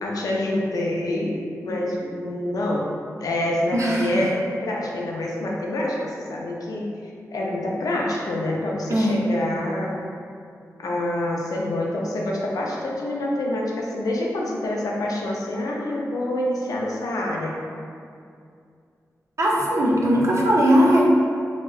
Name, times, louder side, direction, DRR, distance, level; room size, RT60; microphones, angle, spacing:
voice 1, 0.0-2.9 3.2-6.9 7.3-10.0 10.8-17.5, left 1 dB, 75° left, -2 dB, 0.4 m, -26 dB
voice 2, 3.7-4.2 8.9-9.2 19.4-21.0, equal, 50° right, -3 dB, 0.5 m, -19 dB
2.7 x 2.1 x 2.3 m, 2.4 s
cardioid pair, 65°, 6 cm